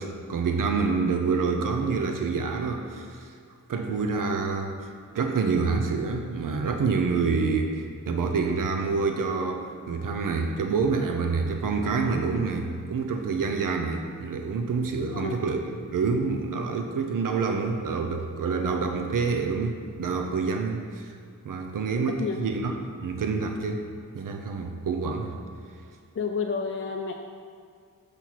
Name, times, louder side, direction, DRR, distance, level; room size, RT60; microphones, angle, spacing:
voice 1, 0.0-3.4 3.7-15.6 15.9-21.2 21.4-22.7 23.0-23.9 24.1-25.4, right 4 dB, 75° right, 4 dB, 0.7 m, -27 dB
voice 2, 15.0-15.4 22.2-22.4 26.1-27.1, left 5 dB, 40° left, 2 dB, 0.5 m, -30 dB
6.8 x 5.7 x 4.6 m, 2.1 s
wide cardioid pair, 80°, 32 cm